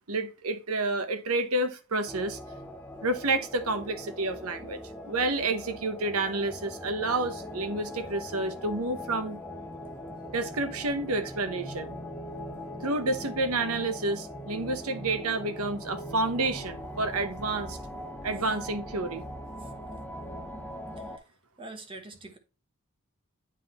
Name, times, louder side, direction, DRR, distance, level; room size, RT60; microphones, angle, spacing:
voice 1, 0.1-2.4 3.0-4.8 5.1-9.4 10.3-12.0 12.8-17.8 18.2-19.2, right 2 dB, 80° right, 1.0 m, -29 dB
sound 1, 2.1-21.2, equal, 10° left, 0.8 m, -41 dB
voice 2, 21.6-22.4, right 2 dB, 25° right, 1.1 m, -45 dB
9.3 x 3.7 x 3.0 m
head